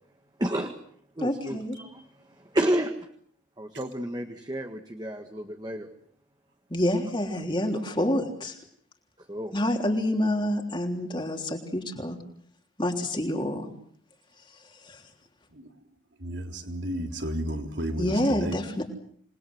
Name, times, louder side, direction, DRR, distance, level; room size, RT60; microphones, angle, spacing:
voice 1, 0.4-0.7 1.2-2.0 2.5-2.9 3.6-5.9 9.3-9.5, right 1 dB, 20° right, 1.7 m, -30 dB
voice 2, 1.2-1.8 6.7-8.5 9.5-12.2 12.8-13.7 18.0-18.8, left 1 dB, 25° left, 3.4 m, -27 dB
voice 3, 16.2-18.6, equal, 65° right, 3.6 m, -32 dB
27.5 x 20.5 x 7.9 m
head